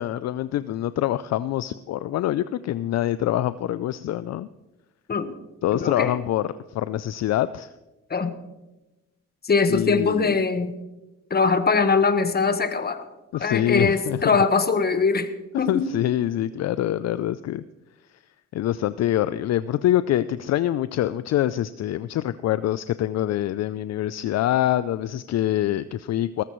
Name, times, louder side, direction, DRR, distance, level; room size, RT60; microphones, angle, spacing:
voice 1, 0.0-4.5 5.6-7.7 9.7-10.4 13.3-14.4 15.5-17.6 18.5-26.4, left 13 dB, 60° left, 15 dB, 0.5 m, -25 dB
voice 2, 5.7-6.2 8.1-8.3 9.4-10.7 11.3-13.0 13.4-15.3 15.6-15.9, left 4 dB, 30° left, 9 dB, 1.3 m, -22 dB
19.0 x 14.0 x 3.1 m, 1.0 s
cardioid pair, 90°, 30 cm